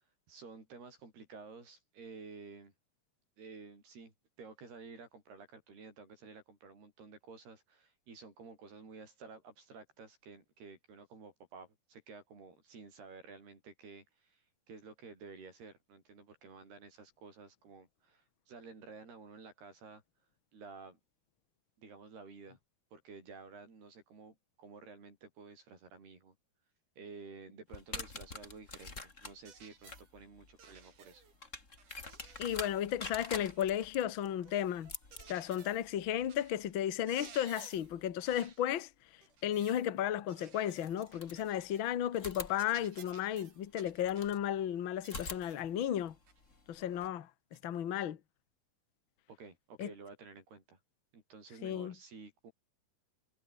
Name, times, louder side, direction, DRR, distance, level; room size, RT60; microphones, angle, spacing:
voice 1, 0.0-2.7 3.4-20.0 20.5-21.0 21.8-22.6 22.9-26.4 27.0-31.2 49.3-50.8 51.1-52.5, right 4 dB, 85° right, 9.6 m, -52 dB
sound 1, 27.7-38.5 40.0-40.1 40.8-41.8 42.1-44.4 45.0-47.1, left 3 dB, 20° left, 3.3 m, -48 dB
sound 2, 29.4-30.1 30.6-31.4 31.8-33.7 34.4-35.9 36.3-36.6 36.9-37.9 38.2-38.6 39.2-39.9 40.3-41.9 42.2-42.3 42.5-44.4 45.0-45.7 46.3-46.4 47.5-47.7, right 7 dB, 55° right, 4.6 m, -57 dB
voice 2, 32.4-34.9 35.3-38.9 39.4-46.1 46.7-47.3 47.6-48.2 49.8-49.9 51.6-51.9, left 11 dB, 80° left, 1.1 m, -34 dB
omnidirectional pair, 4.5 m